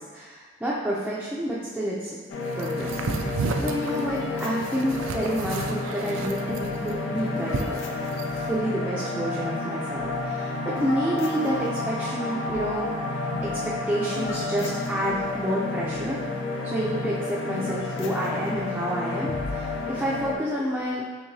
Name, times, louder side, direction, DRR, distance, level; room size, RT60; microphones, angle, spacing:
voice 1, 0.0-2.2 2.5-7.9 8.3-16.2 16.6-21.0, right 1 dB, 5° right, -7 dB, 0.4 m, -29 dB
sound 1, 2.3-20.4, left 3 dB, 75° left, 0.4 m, -31 dB
sound 2, 2.6-8.4, right 4 dB, 85° right, 0.3 m, -32 dB
4.6 x 3.1 x 2.6 m, 1.5 s
head